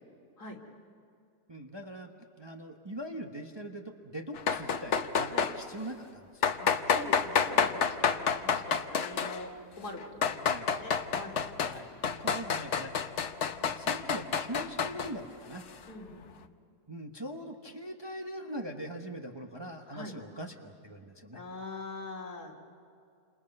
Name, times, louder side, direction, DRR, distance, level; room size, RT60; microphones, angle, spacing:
voice 1, 1.5-2.1 2.4-6.4 10.4-10.7 11.7-12.9 13.6-15.6 16.9-21.4, right 1 dB, 20° right, 2 dB, 1.1 m, -42 dB
sound 1, 4.4-5.6 6.4-9.5 10.0-11.8 12.0-15.1, left 6 dB, 50° left, 1.1 m, -29 dB
voice 2, 6.6-11.4 15.9-16.3 19.9-20.1 21.3-22.5, left 2 dB, 70° left, -1 dB, 3.4 m, -43 dB
29.5 x 27.0 x 5.5 m, 2.5 s
omnidirectional pair, 1.7 m